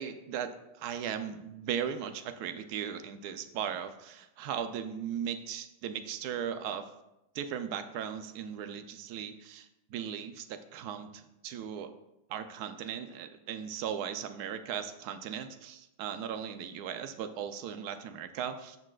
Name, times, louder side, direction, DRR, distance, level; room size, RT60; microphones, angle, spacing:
voice 1, 0.0-6.9 7.3-11.9 12.3-18.8, right 8 dB, 70° right, 8 dB, 1.0 m, -37 dB
14.0 x 6.2 x 2.4 m, 0.88 s
omnidirectional pair, 2.1 m